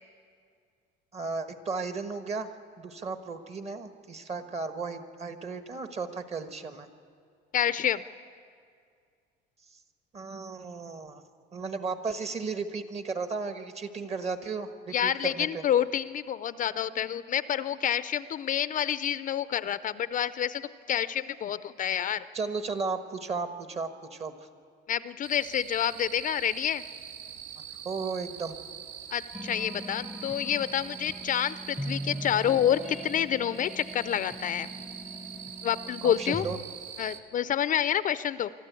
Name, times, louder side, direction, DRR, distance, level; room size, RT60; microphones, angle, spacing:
voice 1, 1.1-6.9 10.1-11.2 11.5-15.6 22.3-24.3 27.8-28.6 36.0-36.6, right 4 dB, 35° right, 9 dB, 1.4 m, -35 dB
voice 2, 7.5-8.0 14.9-20.6 20.9-22.3 24.9-26.8 29.1-34.7 35.6-36.5 37.0-38.5, left 10 dB, 40° left, 15 dB, 0.5 m, -28 dB
sound 1, 25.2-37.2, right 9 dB, 80° right, 1.7 m, -44 dB
sound 2, 29.3-36.6, equal, 5° right, 0.8 m, -40 dB
24.0 x 13.0 x 8.3 m, 2.2 s
cardioid pair, 125°, 20 cm